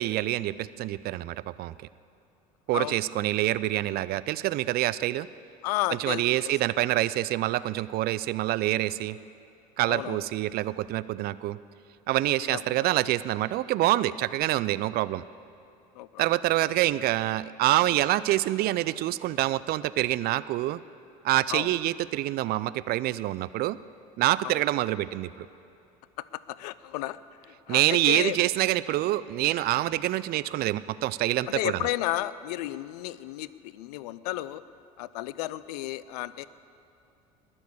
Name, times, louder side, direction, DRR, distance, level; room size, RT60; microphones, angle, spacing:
voice 1, 0.0-1.7 2.7-5.3 6.0-9.2 9.8-11.6 12.1-15.2 16.2-20.8 21.2-23.8 24.2-25.5 27.7-31.8, right 15 dB, 50° right, 17 dB, 0.5 m, -26 dB
voice 2, 5.6-6.5 9.9-10.2 12.4-12.9 16.0-16.3 21.5-21.7 24.4-24.6 26.2-27.2 27.4-28.4 31.5-34.6 35.0-36.5, left 16 dB, 70° left, 17 dB, 0.5 m, -33 dB
20.5 x 7.1 x 8.4 m, 2.8 s
hypercardioid pair, 70°, 21 cm